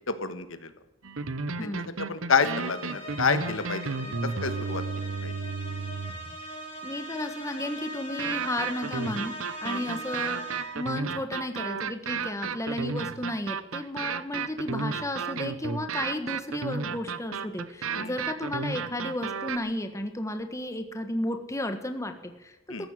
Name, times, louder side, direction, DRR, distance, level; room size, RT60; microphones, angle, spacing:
voice 1, 0.1-0.7 1.6-1.7 2.0-4.8 5.2-5.3 9.6-9.9 17.9-18.1 22.7-22.9, left 5 dB, 70° left, 10 dB, 1.3 m, -29 dB
sound 1, 1.0-6.3 8.2-19.6, right 5 dB, 75° right, 0.8 m, -33 dB
voice 2, 1.6-1.9 6.8-9.3 9.6-22.5 22.8-22.9, left 1 dB, 15° left, 6 dB, 1.5 m, -33 dB
sound 2, 2.5-11.0, right 1 dB, 30° left, 4.1 m, -40 dB
14.5 x 10.5 x 7.7 m, 0.99 s
head